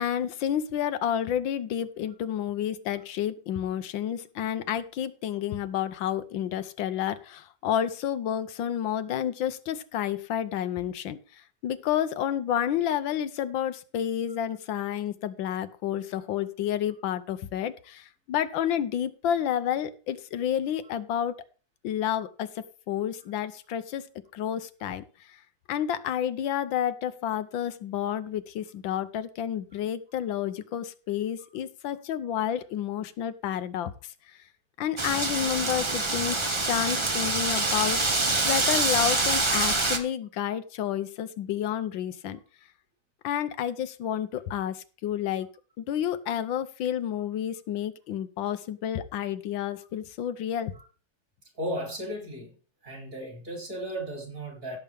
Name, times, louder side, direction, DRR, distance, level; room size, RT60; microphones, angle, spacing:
voice 1, 0.0-21.4 21.8-24.1 24.3-25.4 25.7-34.4 34.8-36.4 36.7-38.0 38.4-42.4 43.2-45.5 45.8-50.7, left 10 dB, 90° left, 12 dB, 1.5 m, -30 dB
Wind, 35.0-40.0, right 2 dB, 25° right, 0.6 m, -25 dB
voice 2, 51.6-52.5 52.8-54.8, equal, 45° right, 2 dB, 3.7 m, -35 dB
16.5 x 7.0 x 3.5 m, 0.37 s
omnidirectional pair, 2.0 m